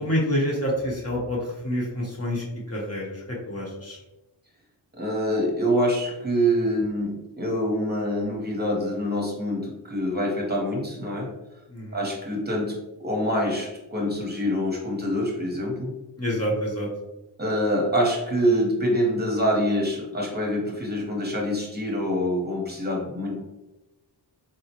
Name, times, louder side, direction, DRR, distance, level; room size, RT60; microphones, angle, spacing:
voice 1, 0.0-4.0 11.7-12.0 16.2-16.9, equal, 35° left, -4 dB, 0.8 m, -28 dB
voice 2, 5.0-11.3 11.9-15.9 17.4-23.4, equal, 20° right, -3 dB, 0.8 m, -25 dB
3.8 x 2.1 x 2.8 m, 0.99 s
wide cardioid pair, 95°, 44 cm